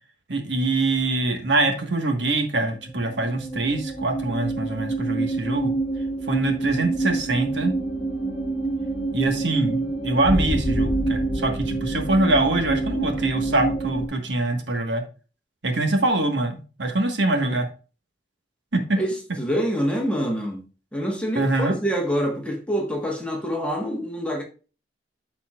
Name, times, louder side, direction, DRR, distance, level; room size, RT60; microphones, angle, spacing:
voice 1, 0.3-5.7 6.3-7.7 9.1-15.0 15.6-17.7 18.7-18.8 21.4-21.7, right 2 dB, 70° right, 1.5 m, -24 dB
sound 1, 2.7-14.1, right 2 dB, 25° left, 1.6 m, -27 dB
voice 2, 19.0-20.6 20.9-24.4, equal, 5° left, 1.4 m, -26 dB
12.5 x 4.3 x 2.4 m
head